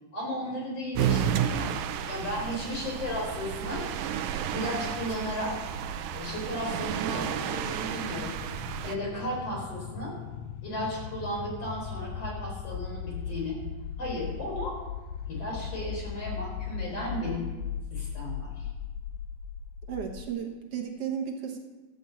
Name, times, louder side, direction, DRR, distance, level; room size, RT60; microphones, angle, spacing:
voice 1, 0.1-1.7 2.1-3.9 4.5-5.5 6.1-8.4 8.8-10.2 10.6-13.6 14.0-14.8 15.3-17.5 17.9-18.7, equal, 45° left, -2 dB, 5.1 m, -34 dB
sound 1, 1.0-9.0, right 9 dB, 85° right, 2.4 m, -32 dB
sound 2, 4.5-20.3, left 7 dB, 80° left, 1.7 m, -39 dB
voice 2, 19.9-21.6, right 8 dB, 55° right, 2 dB, 1.8 m, -34 dB
13.5 x 7.1 x 8.2 m, 1.2 s
omnidirectional pair, 3.9 m